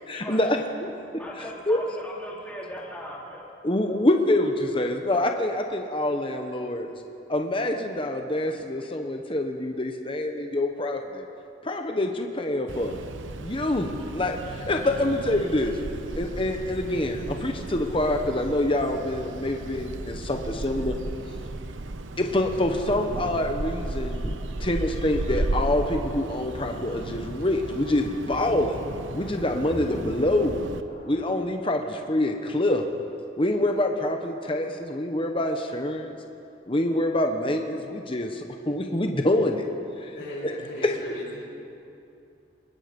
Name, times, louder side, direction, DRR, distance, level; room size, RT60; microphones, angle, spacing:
voice 1, 0.1-0.9 1.7-1.8 3.6-6.9 7.3-11.3 11.6-13.0 13.4-15.8 16.2-21.0 22.2-24.3 24.6-28.8 29.1-30.5 31.1-32.9 33.4-36.1 36.7-39.6 40.0-40.1 40.4-40.5 40.8-40.9, left 1 dB, 25° left, 4 dB, 1.1 m, -26 dB
voice 2, 1.2-3.5, equal, 10° left, -5 dB, 3.7 m, -38 dB
sound 1, 12.7-30.8, right 2 dB, 85° right, 0.9 m, -34 dB
sound 2, 29.1-31.5 32.2-32.3 32.9-33.0, equal, 45° left, 2.1 m, -42 dB
voice 3, 40.1-41.4, left 1 dB, 70° left, -10 dB, 6.4 m, -37 dB
23.5 x 20.5 x 5.4 m, 2.7 s
head